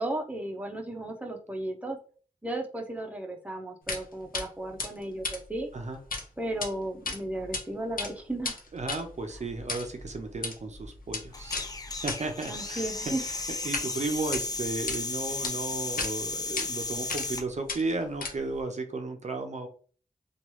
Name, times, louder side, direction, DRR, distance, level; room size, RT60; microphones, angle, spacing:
voice 1, 0.0-2.0 2.4-5.7 6.4-8.6 12.5-13.2, right 1 dB, 10° right, 1 dB, 0.6 m, -34 dB
sound 1, 3.9-4.0 4.3-4.5 4.8-6.2 6.5-6.7 7.0-7.6 7.9-13.9 14.2-15.0 15.4-15.5 16.0-16.1 16.6-16.7 17.1-17.4 17.7-18.6, left 4 dB, 90° left, 0.6 m, -35 dB
voice 2, 8.7-11.6 11.9-12.9 13.6-19.7, right 3 dB, 55° right, 5 dB, 0.5 m, -34 dB
sound 2, 11.3-17.5, left 3 dB, 25° left, 0.3 m, -34 dB
3.0 x 2.3 x 3.0 m, 0.42 s
wide cardioid pair, 60°, 14 cm